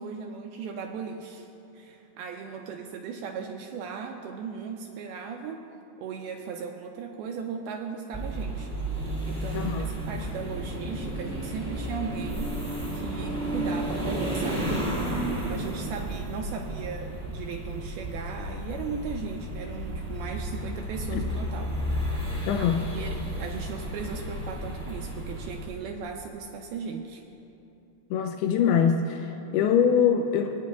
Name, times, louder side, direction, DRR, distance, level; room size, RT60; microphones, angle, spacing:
voice 1, 0.0-1.5 1.7-5.6 6.0-8.7 9.3-12.6 12.9-14.8 15.4-22.2 22.9-27.2, right 6 dB, 85° right, 3 dB, 2.2 m, -37 dB
sound 1, 8.1-25.7, right 1 dB, 10° right, 1.0 m, -32 dB
voice 2, 9.5-9.9 21.1-21.2 22.5-22.9 28.1-30.6, left 7 dB, 80° left, 5 dB, 2.4 m, -23 dB
25.0 x 9.4 x 2.3 m, 2.8 s
omnidirectional pair, 4.9 m